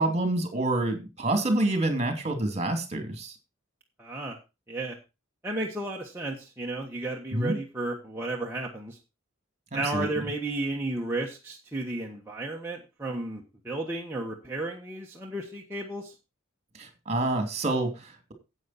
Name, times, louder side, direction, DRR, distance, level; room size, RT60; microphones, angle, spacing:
voice 1, 0.0-3.3 7.3-7.6 9.7-10.1 16.7-18.3, right 2 dB, 35° right, 6 dB, 2.6 m, -27 dB
voice 2, 4.0-4.4 4.7-5.0 5.4-9.0 9.7-16.1, right 2 dB, 10° right, -3 dB, 1.4 m, -33 dB
10.5 x 8.1 x 4.2 m, 0.27 s
head